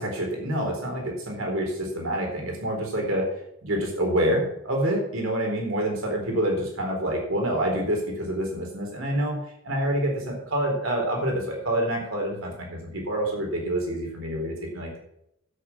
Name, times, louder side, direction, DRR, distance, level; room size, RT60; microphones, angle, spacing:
voice 1, 0.0-3.3 3.6-15.0, right 1 dB, 70° right, 1 dB, 4.0 m, -27 dB
13.0 x 8.0 x 6.0 m, 0.77 s
head